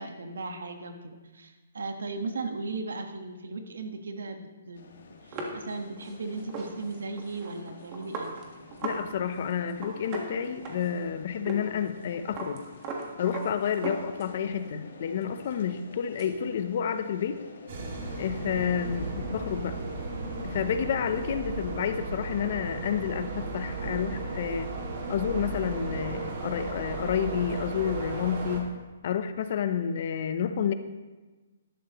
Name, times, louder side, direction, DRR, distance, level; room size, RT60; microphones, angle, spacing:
voice 1, 0.0-4.9 5.2-8.4 13.8-13.9, right 3 dB, 90° right, 6 dB, 1.4 m, -37 dB
sound 1, 4.7-20.7, left 3 dB, 70° left, 1.8 m, -50 dB
sound 2, 5.3-9.0 9.3-9.4 9.7-11.1 11.5-11.6 11.9-14.5 14.9-16.3, right 3 dB, 25° right, 1.6 m, -38 dB
voice 2, 8.8-12.6 13.2-17.4 18.2-19.8 20.4-24.7 25.1-28.7 29.0-30.7, left 8 dB, 45° left, 10 dB, 0.7 m, -30 dB
sound 3, 17.7-28.6, right 3 dB, 50° right, 2.2 m, -35 dB
13.5 x 11.5 x 3.1 m, 1.2 s
hypercardioid pair, 165°, 0 cm